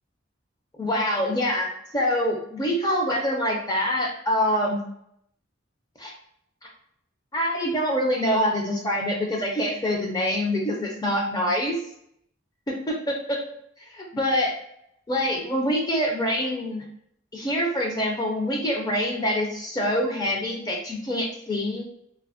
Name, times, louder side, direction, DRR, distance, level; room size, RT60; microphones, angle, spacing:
voice 1, 0.8-4.8 6.0-6.1 6.6-6.7 7.3-11.8 12.7-13.4 13.9-14.5 15.1-16.8 17.3-21.8, equal, 20° left, 0 dB, 0.5 m, -25 dB
3.2 x 2.0 x 2.5 m, 0.73 s
head